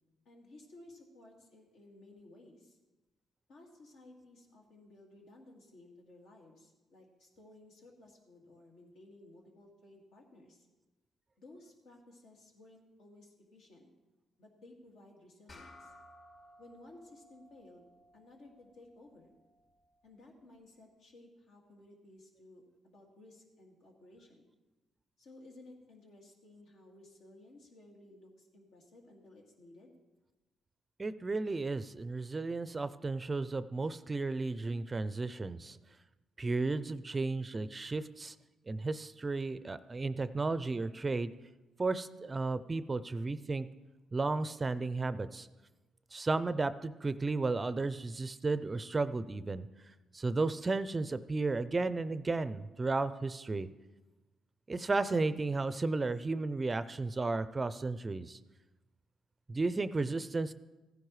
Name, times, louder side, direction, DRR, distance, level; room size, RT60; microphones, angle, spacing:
voice 1, 0.2-2.8 3.5-10.7 11.4-13.9 14.4-15.9 16.6-19.3 20.0-24.5 25.2-30.0, left 2 dB, 80° left, -1 dB, 2.3 m, -57 dB
sound 1, 15.5-20.3, left 1 dB, 50° left, 2.5 m, -59 dB
voice 2, 31.0-35.8 36.4-38.3 38.7-41.3 41.8-43.7 44.1-45.5 46.1-49.7 50.1-53.7 54.7-58.4 59.5-60.5, right 3 dB, 25° right, 14 dB, 0.4 m, -33 dB
15.5 x 10.0 x 3.2 m, 1.1 s
cardioid pair, 90°, 0 cm